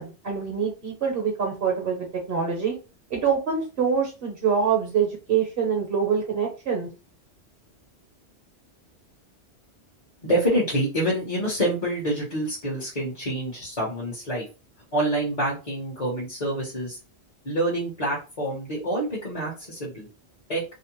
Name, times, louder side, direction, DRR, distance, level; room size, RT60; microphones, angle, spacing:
voice 1, 0.0-2.7 3.1-6.9, right 6 dB, 60° right, 0 dB, 0.9 m, -25 dB
voice 2, 10.2-14.4 14.9-17.0 17.4-20.1 20.5-20.6, right 1 dB, 40° left, -4 dB, 0.9 m, -27 dB
2.6 x 2.0 x 2.9 m, 0.31 s
omnidirectional pair, 1.1 m